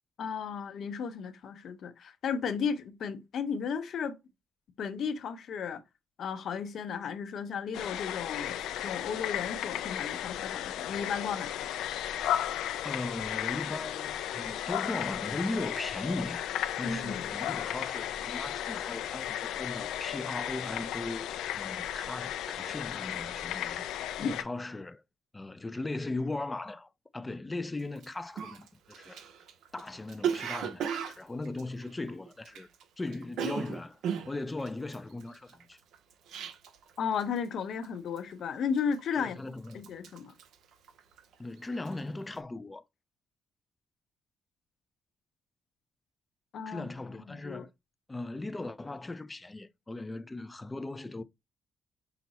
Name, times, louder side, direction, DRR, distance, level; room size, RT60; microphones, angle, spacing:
voice 1, 0.2-4.2 4.8-5.8 6.2-8.5 8.8-11.7 16.8-17.2 24.2-24.3 37.0-39.4 39.7-40.3 46.5-46.9 47.3-47.6, left 6 dB, 65° left, 0.8 m, -34 dB
sound 1, 7.7-24.4, left 11 dB, 85° left, 0.4 m, -35 dB
voice 2, 12.8-23.9 24.2-25.0 25.3-29.2 29.7-32.7 33.0-34.0 34.3-35.8 39.2-39.9 41.4-42.8 46.7-47.7 48.1-51.2, left 2 dB, 20° left, 0.4 m, -38 dB
Cough, 28.0-28.1 28.4-32.8 33.1-36.9 37.2-37.5 37.8-38.3 38.8-39.4 39.7-41.3 41.7-42.0, right 8 dB, 80° right, 0.6 m, -36 dB
5.8 x 2.0 x 4.0 m
cardioid pair, 90°, 0 cm